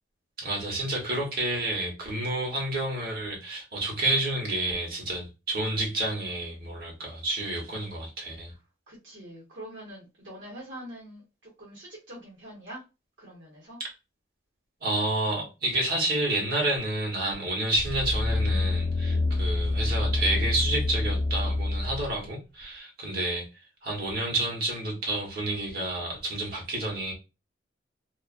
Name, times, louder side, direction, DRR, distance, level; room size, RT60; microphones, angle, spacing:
voice 1, 0.4-8.5 14.8-23.5 23.8-27.1, right 1 dB, 55° right, 1.1 m, -29 dB
voice 2, 8.9-12.8 13.2-13.8, right 1 dB, 90° right, 1.1 m, -44 dB
sound 1, 17.8-22.1 22.6-22.7, left 2 dB, 25° left, 0.9 m, -27 dB
2.4 x 2.4 x 2.4 m
head